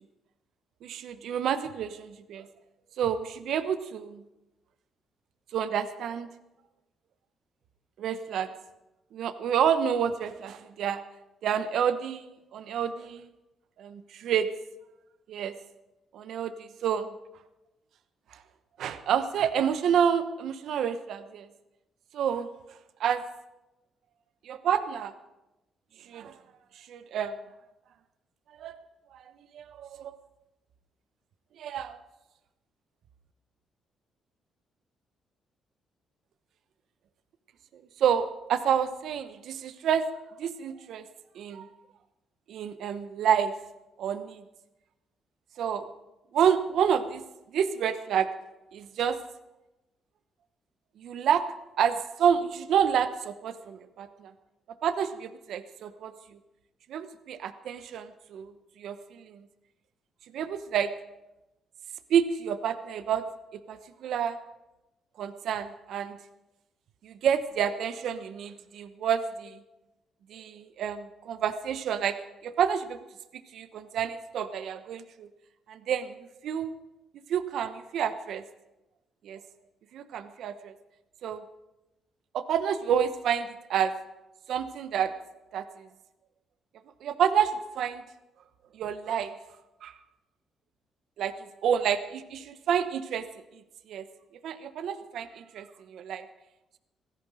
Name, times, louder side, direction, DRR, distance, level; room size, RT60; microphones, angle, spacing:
voice 1, 0.8-2.5 3.0-4.2 5.5-6.3 8.0-8.5 9.1-11.0 11.4-13.3 13.8-14.5 15.3-15.5 16.1-17.1 18.3-18.4 18.8-21.5 22.1-22.5 23.0-23.2 24.4-25.1 26.1-26.3 26.8-27.3 28.6-28.8 29.1-29.2 29.5-30.2 31.6-32.0 37.7-40.0 40.4-41.0 41.3-41.7 42.5-43.5 44.0-44.4 45.6-45.9 46.3-47.2 47.5-48.3 48.7-49.2 51.0-51.4 51.8-54.3 54.8-56.1 56.9-58.5 58.8-59.4 60.3-60.9 62.1-63.2 63.5-64.4 65.2-66.2 67.0-69.6 70.3-72.2 72.4-73.0 73.5-75.3 75.7-76.2 76.4-76.7 77.3-78.4 79.2-79.4 79.9-80.7 81.2-81.4 82.3-83.9 84.5-85.1 85.5-85.9 87.0-88.0 88.7-89.4 89.8-89.9 91.2-91.3 91.6-93.3 93.9-94.0 94.4-96.3, right 8 dB, 75° right, 11 dB, 0.9 m, -29 dB
17.5 x 15.0 x 5.0 m, 0.98 s
cardioid pair, 90°, 0 cm